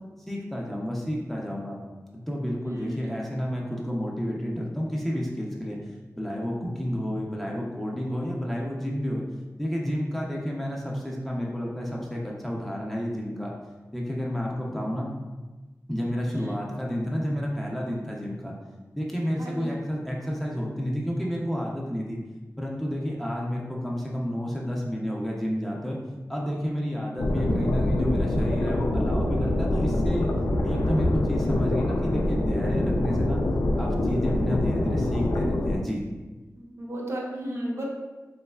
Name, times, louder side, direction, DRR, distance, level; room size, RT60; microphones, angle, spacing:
voice 1, 0.3-1.8 2.1-5.8 6.2-9.2 9.6-13.5 13.9-15.1 15.9-18.5 19.0-22.2 22.6-26.0 26.3-30.3 30.6-33.4 33.8-36.0, equal, 5° left, -3 dB, 0.5 m, -30 dB
voice 2, 2.6-3.1 16.3-16.6 19.4-19.7 36.6-37.9, right 1 dB, 50° right, -2 dB, 0.6 m, -34 dB
sound 1, 27.2-35.8, left 1 dB, 80° left, 0.4 m, -25 dB
3.4 x 3.1 x 2.3 m, 1.2 s
wide cardioid pair, 85°, 6 cm